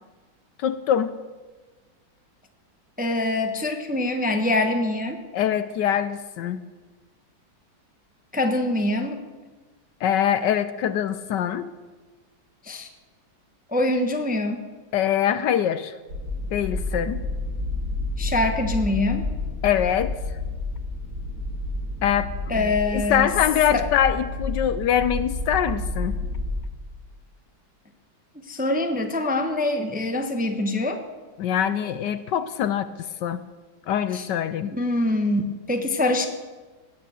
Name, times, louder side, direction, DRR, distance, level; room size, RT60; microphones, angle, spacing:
voice 1, 0.6-1.1 5.3-6.6 10.0-11.7 14.9-15.9 16.5-17.2 19.6-20.2 22.0-26.2 31.4-32.9 33.2-33.4 33.9-34.7, left 9 dB, 70° left, 13 dB, 1.2 m, -23 dB
voice 2, 3.0-5.2 8.3-9.2 12.6-12.9 13.7-14.7 18.2-19.2 22.5-23.3 23.7-23.9 28.3-31.0 34.1-34.3 34.7-36.3, left 2 dB, 5° right, 5 dB, 0.7 m, -24 dB
sound 1, 16.1-26.5, left 2 dB, 75° right, 6.4 m, -30 dB
18.0 x 9.2 x 7.8 m, 1.3 s
omnidirectional pair, 2.1 m